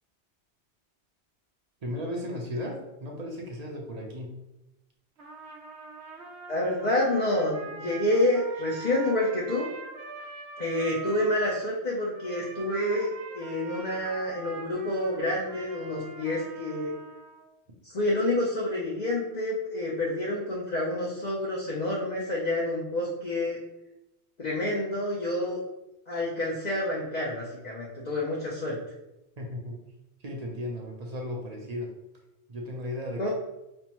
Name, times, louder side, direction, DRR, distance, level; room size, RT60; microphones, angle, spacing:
voice 1, 1.8-4.4 29.4-29.8 30.2-31.9 32.5-33.3, left 1 dB, 45° right, 0 dB, 0.7 m, -35 dB
Trumpet, 5.2-11.7 12.1-17.5, right 3 dB, 70° right, 0.9 m, -43 dB
voice 2, 6.5-9.7 10.6-13.1 13.3-16.9 17.8-23.6 24.4-25.6 26.1-28.8 33.2-33.3, left 1 dB, 45° left, -5 dB, 0.7 m, -28 dB
5.2 x 2.1 x 2.9 m, 0.92 s
omnidirectional pair, 1.2 m